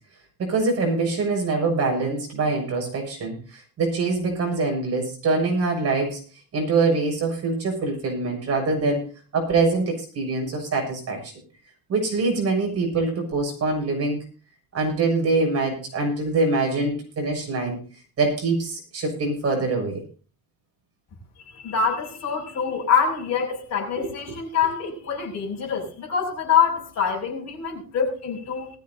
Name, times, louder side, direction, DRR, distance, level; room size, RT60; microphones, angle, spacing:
voice 1, 0.4-6.2 6.5-11.3 11.9-14.2 14.7-17.8 18.2-20.0 24.0-24.1, right 3 dB, 40° right, 2 dB, 6.9 m, -24 dB
voice 2, 21.5-28.7, left 6 dB, 45° left, 0 dB, 6.2 m, -25 dB
20.0 x 14.5 x 2.7 m, 0.35 s
cardioid pair, 155°, 38 cm